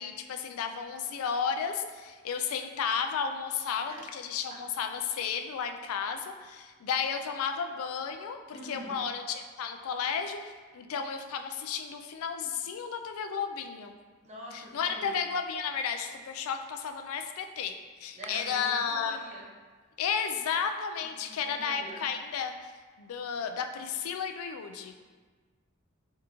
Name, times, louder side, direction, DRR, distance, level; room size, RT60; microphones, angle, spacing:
voice 1, 0.0-13.9 14.5-17.7 18.0-19.2 20.0-22.5 23.0-24.9, left 6 dB, 90° left, 6 dB, 0.4 m, -33 dB
voice 2, 8.5-9.0 14.2-15.1 18.1-19.5 21.0-22.0 25.0-25.1, right 1 dB, 30° right, -3 dB, 0.7 m, -45 dB
3.7 x 3.5 x 2.9 m, 1.4 s
head